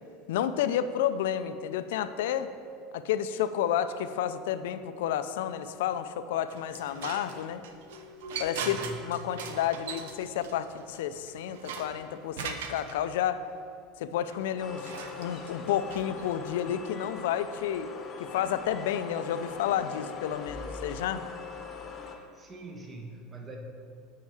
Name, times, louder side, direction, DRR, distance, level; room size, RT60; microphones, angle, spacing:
voice 1, 0.3-2.5 2.9-7.6 8.4-13.4 14.0-17.9 18.2-21.2, left 10 dB, 80° left, 11 dB, 0.4 m, -31 dB
sound 1, 6.5-12.9 14.3-16.6, right 5 dB, 80° right, 0.6 m, -40 dB
voice 2, 8.6-9.1 22.1-23.6, right 3 dB, 25° right, 1 dB, 1.3 m, -43 dB
sound 2, 14.6-22.2, left 6 dB, 35° left, 0.9 m, -41 dB
8.4 x 4.7 x 4.8 m, 2.4 s
supercardioid pair, 100°, 0 cm